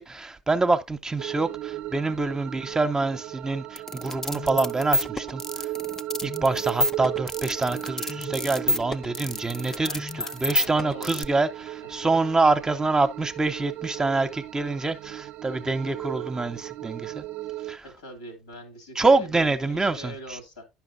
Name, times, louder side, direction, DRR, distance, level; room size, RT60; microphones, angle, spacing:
voice 1, 0.0-5.7 6.2-17.2 17.6-17.8 18.9-20.4, right 3 dB, 15° right, 0.8 m, -26 dB
sound 1, 1.2-17.8, right 15 dB, 55° right, 0.4 m, -36 dB
sound 2, 3.8-11.3, left 1 dB, 10° left, 0.6 m, -29 dB
voice 2, 9.6-11.3 17.8-20.6, equal, 85° left, 2.4 m, -42 dB
10.5 x 5.9 x 2.7 m
hypercardioid pair, 65°, 4 cm